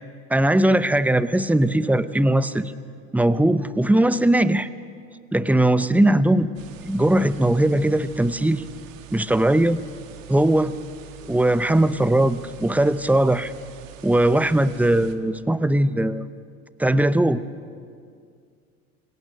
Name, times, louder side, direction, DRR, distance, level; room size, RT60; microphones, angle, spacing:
voice 1, 0.3-2.7 3.1-4.7 5.3-6.5 6.8-8.6 9.1-9.8 10.3-10.7 11.3-13.5 14.0-16.3 16.8-17.4, right 1 dB, 5° right, 14 dB, 0.7 m, -19 dB
sound 1, 6.5-15.1, right 12 dB, 80° right, 1.4 m, -44 dB
26.0 x 17.5 x 6.6 m, 2.2 s
hypercardioid pair, 75°, 39 cm